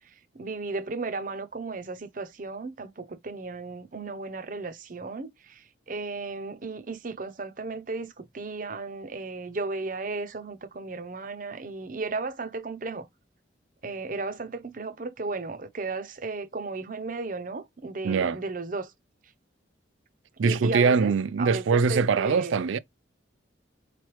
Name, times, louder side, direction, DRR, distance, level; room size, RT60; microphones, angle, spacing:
voice 1, 0.0-13.1 13.8-18.9 20.4-21.1 21.4-22.6, right 3 dB, 45° right, 0.7 m, -35 dB
voice 2, 18.0-18.4 20.4-22.8, right 5 dB, 85° right, 0.4 m, -23 dB
4.3 x 3.3 x 3.0 m
head